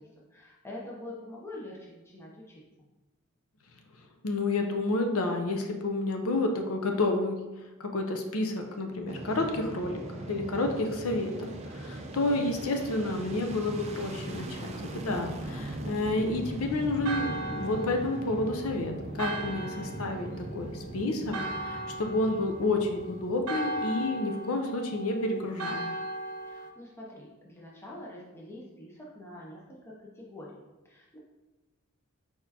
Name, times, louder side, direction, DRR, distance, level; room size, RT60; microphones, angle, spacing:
voice 1, 0.0-2.9 26.5-31.2, left 1 dB, 10° left, -4 dB, 0.6 m, -45 dB
voice 2, 4.2-7.4 7.8-10.0 10.3-25.9, left 2 dB, 70° left, 4 dB, 0.6 m, -30 dB
Fixed-wing aircraft airplane, 9.1-24.2, right 1 dB, 30° right, 0.4 m, -40 dB
Church bell, 17.0-26.7, right 1 dB, 90° right, 0.6 m, -38 dB
4.4 x 4.2 x 2.8 m, 1.1 s
head